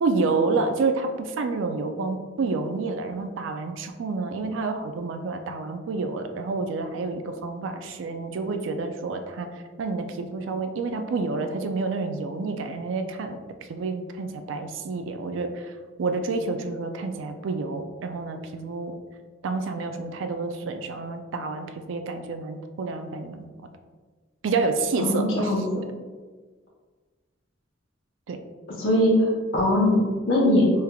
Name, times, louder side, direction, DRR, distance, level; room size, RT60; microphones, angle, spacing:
voice 1, 0.0-13.4 13.7-19.0 19.4-23.5 24.4-25.7 28.3-28.4, right 3 dB, 75° right, 7 dB, 0.3 m, -29 dB
voice 2, 25.0-25.6 28.8-29.3 29.5-30.0 30.3-30.7, left 1 dB, 70° left, -6 dB, 0.8 m, -20 dB
3.4 x 3.3 x 2.3 m, 1.5 s
head